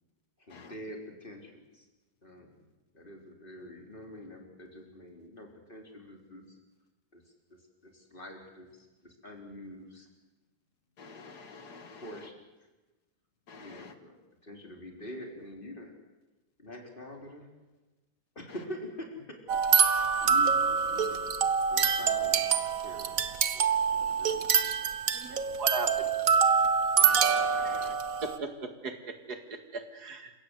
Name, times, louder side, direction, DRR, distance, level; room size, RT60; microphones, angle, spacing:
voice 1, 0.4-1.9 2.2-2.6 2.9-6.6 7.1-7.2 7.5-10.1 12.0-12.4 13.5-15.9 16.6-17.5 18.4-19.4 20.2-21.3 21.7-22.5 22.8-23.1 23.5-24.7 25.4-25.6, equal, 30° left, 4.2 m, -46 dB
voice 2, 11.0-12.1 13.5-13.9 27.0-27.9, left 4 dB, 85° left, 2.3 m, -49 dB
sound 1, 19.5-28.4, right 6 dB, 60° right, 1.5 m, -26 dB
voice 3, 25.1-26.1 27.6-27.8 28.2-30.3, right 3 dB, 75° right, 2.7 m, -37 dB
28.5 x 16.5 x 8.3 m
omnidirectional pair, 1.7 m